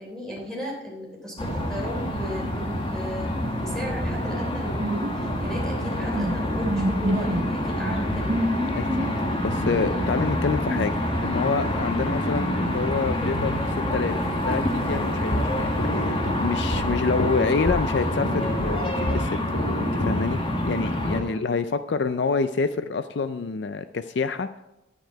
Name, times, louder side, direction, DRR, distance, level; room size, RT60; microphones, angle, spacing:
voice 1, 0.0-3.3 3.6-8.3 10.2-10.4 11.8-12.0 21.1-21.5, equal, 5° left, -2 dB, 3.1 m, -35 dB
sound 1, 1.4-21.2, left 1 dB, 25° left, 1.4 m, -27 dB
sound 2, 4.8-5.5 5.8-5.9 6.1-6.4 6.6-7.5 8.3-9.3 9.8-10.2 10.6-10.9, right 1 dB, 35° right, 0.9 m, -28 dB
voice 2, 8.8-9.1 9.4-14.1 14.4-19.4 19.9-24.5, left 4 dB, 55° left, 11 dB, 0.4 m, -27 dB
sound 3, 14.9-20.2, left 1 dB, 75° left, 2.1 m, -30 dB
10.0 x 9.1 x 4.6 m, 0.95 s
head